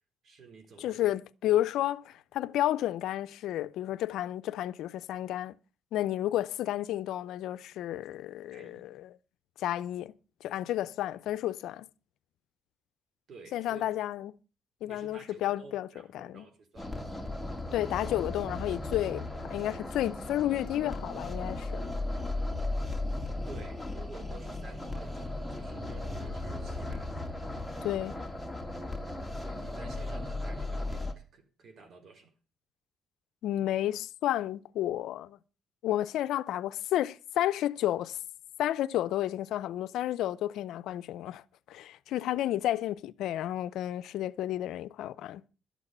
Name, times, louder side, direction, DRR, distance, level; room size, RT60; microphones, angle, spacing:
voice 1, 0.2-1.1 8.5-8.8 13.3-13.8 14.9-16.9 23.5-27.1 29.3-32.3, right 4 dB, 60° right, 3.9 m, -51 dB
voice 2, 0.8-5.5 5.9-9.1 9.6-10.1 10.4-11.9 13.5-14.3 14.8-15.9 16.1-16.5 17.7-21.9 27.8-28.1 33.4-35.4 35.8-38.2 38.6-41.4 41.7-45.4, left 13 dB, 85° left, 0.6 m, -31 dB
sound 1, 16.8-31.1, left 2 dB, ahead, 2.5 m, -36 dB
12.5 x 8.3 x 6.8 m
cardioid pair, 90°, 0 cm